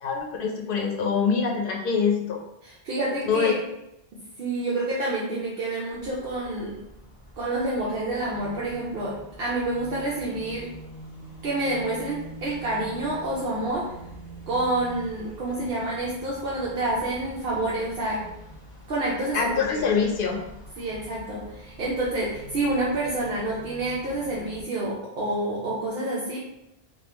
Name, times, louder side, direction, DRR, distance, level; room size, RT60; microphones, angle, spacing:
voice 1, 0.0-2.4 3.3-3.5 19.3-20.4, left 6 dB, 65° left, 0 dB, 0.8 m, -24 dB
voice 2, 2.6-3.5 4.4-6.8 7.4-10.7 11.4-13.9 14.5-18.3 18.9-19.8 20.8-26.4, right 2 dB, 70° right, -6 dB, 0.9 m, -28 dB
sound 1, 5.9-24.6, right 1 dB, 20° right, 1.1 m, -45 dB
3.5 x 2.3 x 2.9 m, 0.86 s
omnidirectional pair, 1.0 m